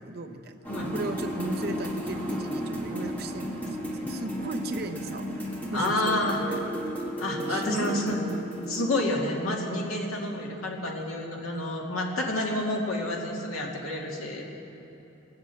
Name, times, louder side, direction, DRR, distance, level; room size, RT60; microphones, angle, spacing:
voice 1, 0.0-5.4 5.7-5.9 6.3-6.6 7.5-8.2, right 2 dB, 45° right, 6 dB, 0.8 m, -36 dB
sound 1, 0.6-9.0, equal, 10° left, 1.5 m, -34 dB
voice 2, 5.7-6.4 7.2-8.3 8.7-14.6, left 1 dB, 85° left, -1 dB, 2.2 m, -29 dB
19.5 x 8.0 x 8.3 m, 2.9 s
head